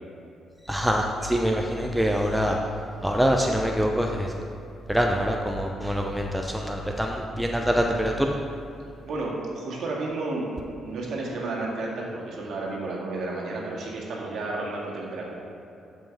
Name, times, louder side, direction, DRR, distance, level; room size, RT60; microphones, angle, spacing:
voice 1, 0.7-2.6 3.0-4.3 4.9-8.4, equal, 5° right, 1 dB, 0.5 m, -25 dB
voice 2, 9.1-15.3, right 2 dB, 70° right, -3 dB, 1.9 m, -32 dB
12.5 x 5.5 x 3.5 m, 2.7 s
cardioid pair, 90°, 0 cm